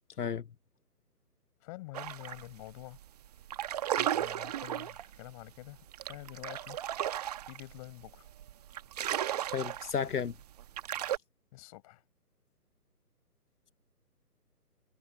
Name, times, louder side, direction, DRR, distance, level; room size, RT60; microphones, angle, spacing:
voice 1, 1.6-3.0 4.0-6.8 7.5-8.3 11.5-12.0, left 21 dB, 25° left, 7.0 m, -47 dB
sound 1, 1.9-2.5 2.8-3.0 3.4-11.2, right 11 dB, 25° right, 1.5 m, -35 dB
voice 2, 9.5-10.3, left 7 dB, 75° left, 1.1 m, -32 dB
figure-of-eight pair, 155°, 47 cm